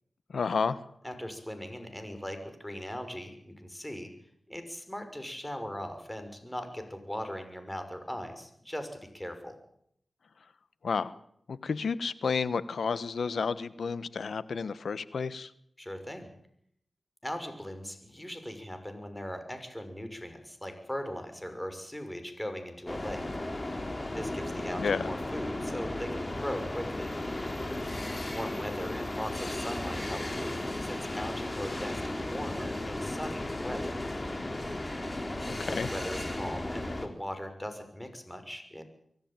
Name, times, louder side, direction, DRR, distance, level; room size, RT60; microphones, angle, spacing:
voice 1, 0.3-0.8 10.8-11.1 11.5-15.5 24.8-25.1 35.6-35.9, left 5 dB, 80° left, 16 dB, 1.2 m, -31 dB
voice 2, 1.0-4.1 4.5-9.6 15.8-16.3 17.2-23.3 24.1-27.1 28.3-34.0 35.4-38.8, equal, 10° left, 8 dB, 6.1 m, -39 dB
sound 1, 22.9-37.1, left 1 dB, 30° left, 3.9 m, -35 dB
24.0 x 14.5 x 9.1 m, 0.70 s
cardioid pair, 50°, 0 cm